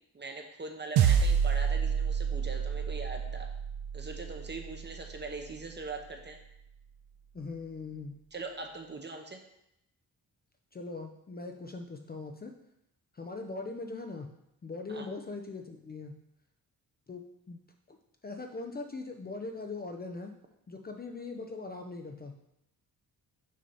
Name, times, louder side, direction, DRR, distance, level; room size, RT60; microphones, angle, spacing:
voice 1, 0.1-3.5 3.9-6.4 8.3-9.4 14.9-15.1, right 3 dB, 30° right, 4 dB, 0.8 m, -41 dB
sound 1, 1.0-5.5, right 7 dB, 85° right, 0.6 m, -29 dB
voice 2, 7.3-8.2 10.7-12.5 13.1-14.3 14.6-16.2 17.1-17.6 17.9-20.3 20.7-22.4, left 3 dB, 25° left, 3 dB, 0.5 m, -41 dB
6.3 x 2.8 x 5.3 m, 0.81 s
cardioid pair, 80°, 38 cm